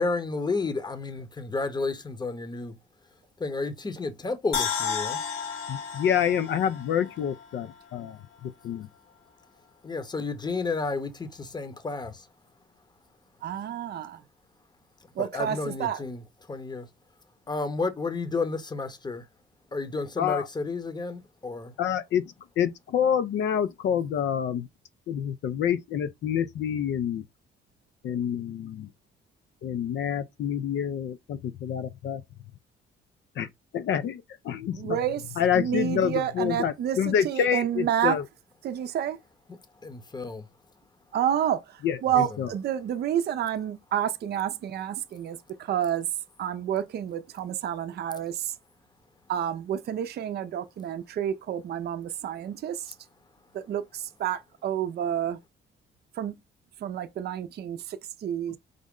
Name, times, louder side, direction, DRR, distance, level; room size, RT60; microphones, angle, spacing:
voice 1, 0.0-2.7 3.4-5.2 9.8-12.3 15.2-16.2 16.5-16.9 17.5-19.2 19.7-21.7 39.8-40.5, left 3 dB, 20° left, 0.8 m, -31 dB
sound 1, 4.5-7.7 8.1-8.2, left 7 dB, 85° left, 1.0 m, -32 dB
voice 2, 5.7-8.9 20.2-20.5 21.8-24.7 25.1-27.2 28.0-28.9 29.6-32.2 33.4-33.5 33.7-35.0 35.4-38.2 41.8-42.5, left 8 dB, 65° left, 0.4 m, -27 dB
voice 3, 13.4-14.2 15.1-16.0 34.7-35.2 35.5-38.2 38.6-39.2 41.1-46.1 46.4-48.6 49.3-53.0 53.5-55.4 56.1-56.4 56.8-58.6, right 10 dB, 55° right, 0.5 m, -29 dB
5.0 x 2.1 x 3.6 m
cardioid pair, 90°, 20 cm